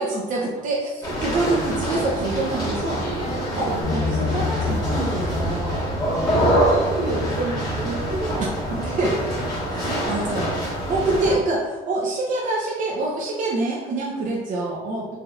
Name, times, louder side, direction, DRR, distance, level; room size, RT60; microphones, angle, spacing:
voice 1, 0.0-5.9 8.8-9.2 9.7-10.6 10.9-15.2, right 2 dB, 50° right, -4 dB, 0.6 m, -26 dB
sound 1, 1.0-11.4, right 1 dB, 20° left, 1.2 m, -25 dB
voice 2, 3.5-4.4 6.0-9.2 9.7-11.3, right 2 dB, 80° right, -4 dB, 1.1 m, -32 dB
Bass guitar, 3.8-10.1, left 8 dB, 50° left, 0.9 m, -33 dB
3.3 x 2.8 x 2.3 m, 1.2 s
cardioid pair, 110°, 17 cm